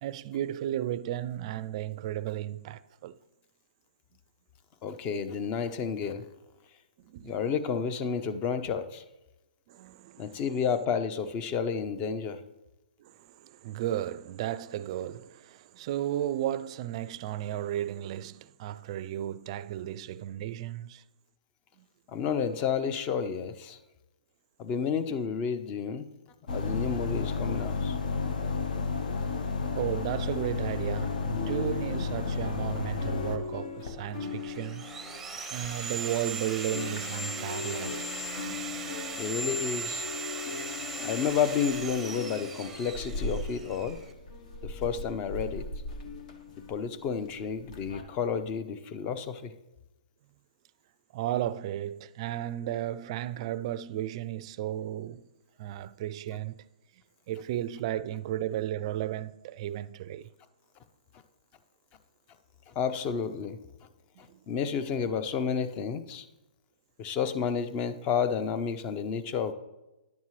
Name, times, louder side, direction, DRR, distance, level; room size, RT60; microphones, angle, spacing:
voice 1, 0.0-3.2 7.0-7.3 9.7-10.4 13.0-21.0 21.8-21.9 29.7-34.9 35.5-38.1 51.1-55.3 55.6-56.6 57.3-60.3 64.2-64.5, right 12 dB, 40° right, 0.4 m, -34 dB
voice 2, 4.8-6.2 7.2-9.0 10.2-12.4 22.1-23.8 24.6-26.1 26.5-28.0 29.2-29.3 39.2-40.1 41.0-44.0 44.6-45.6 46.7-49.5 62.7-63.6 64.2-66.3 67.0-69.5, left 6 dB, 25° left, 0.6 m, -31 dB
sound 1, 26.5-33.4, left 4 dB, 75° left, 1.0 m, -31 dB
sound 2, 31.0-36.3 36.6-48.0, left 4 dB, 55° left, 1.3 m, -40 dB
Sawing, 34.2-44.1, right 3 dB, 5° right, 0.7 m, -38 dB
10.5 x 7.2 x 3.1 m
hypercardioid pair, 145°, 5 cm